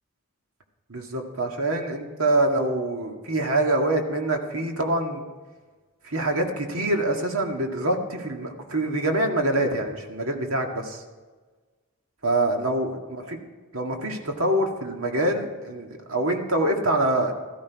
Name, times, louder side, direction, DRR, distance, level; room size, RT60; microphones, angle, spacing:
voice 1, 0.9-5.2 6.0-11.0 12.2-13.0 13.7-17.3, right 1 dB, 80° right, 3 dB, 1.9 m, -25 dB
16.5 x 13.5 x 4.7 m, 1.4 s
head